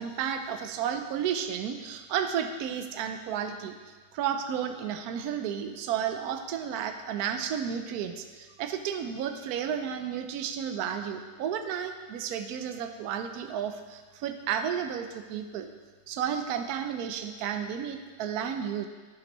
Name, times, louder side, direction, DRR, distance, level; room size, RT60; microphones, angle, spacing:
voice 1, 0.0-3.7 4.1-15.7 16.1-18.9, right 8 dB, 75° right, 7 dB, 0.8 m, -32 dB
9.8 x 7.7 x 3.0 m, 1.4 s
omnidirectional pair, 2.2 m